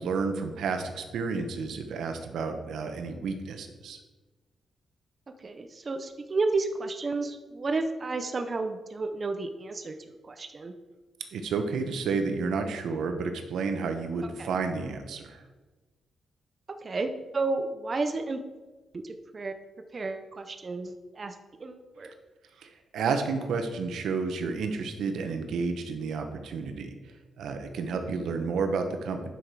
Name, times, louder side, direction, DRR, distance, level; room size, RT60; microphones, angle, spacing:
voice 1, 0.0-4.0 11.3-15.4 22.6-26.9 27.4-29.3, right 4 dB, 85° right, 6 dB, 1.1 m, -31 dB
voice 2, 5.4-10.7 14.4-14.5 16.8-18.4 19.0-19.5 19.9-22.1, right 3 dB, 35° right, 6 dB, 0.7 m, -32 dB
9.9 x 5.9 x 4.8 m, 1.2 s
cardioid pair, 115°, 0 cm